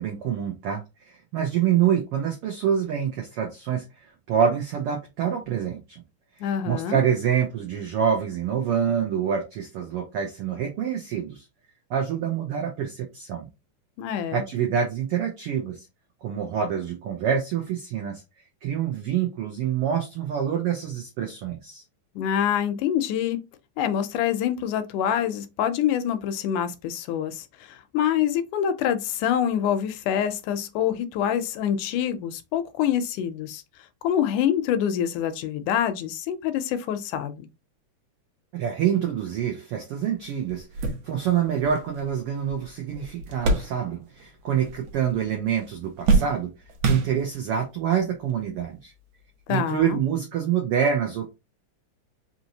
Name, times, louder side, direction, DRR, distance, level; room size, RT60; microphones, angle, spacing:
voice 1, 0.0-3.8 4.3-6.0 6.4-11.4 11.9-13.5 14.3-15.8 16.2-18.2 18.6-21.8 38.5-46.5 46.8-48.9 49.5-51.3, right 8 dB, 90° right, 1.2 m, -26 dB
voice 2, 6.4-7.0 14.0-14.4 22.2-23.4 23.8-33.6 34.0-37.5 49.5-50.0, left 9 dB, 80° left, 1.9 m, -26 dB
sound 1, 40.0-40.1 40.5-44.3 44.5-45.3 45.6-47.6 48.4-48.5 49.8-49.9, right 3 dB, 70° right, 1.7 m, -27 dB
5.0 x 2.9 x 2.7 m
omnidirectional pair, 3.6 m